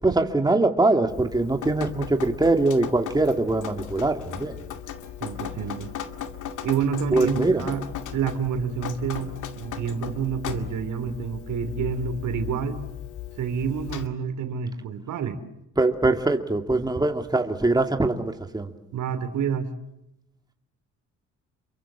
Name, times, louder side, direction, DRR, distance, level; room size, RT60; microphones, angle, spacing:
voice 1, 0.0-4.6 7.1-7.6 15.8-18.7, right 2 dB, 15° right, 5 dB, 2.6 m, -22 dB
Drip, 1.1-14.1, left 9 dB, 85° left, 2.3 m, -37 dB
voice 2, 5.2-5.9 6.6-7.8 8.1-12.8 13.4-15.4 18.9-19.7, right 7 dB, 80° right, 9 dB, 3.3 m, -28 dB
29.0 x 23.5 x 7.5 m, 0.85 s
cardioid pair, 100°, 30 cm